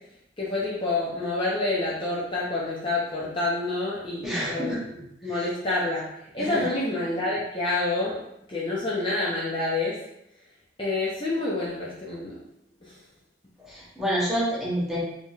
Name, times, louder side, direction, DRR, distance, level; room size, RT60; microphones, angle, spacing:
voice 1, 0.4-6.0 6.3-8.2 8.5-10.0 10.8-12.3 12.9-13.0, left 2 dB, 25° left, -7 dB, 0.6 m, -28 dB
voice 2, 4.2-4.8 5.3-5.4 6.4-6.7 13.7-15.0, equal, ahead, -8 dB, 0.9 m, -28 dB
4.5 x 2.8 x 2.4 m, 0.80 s
head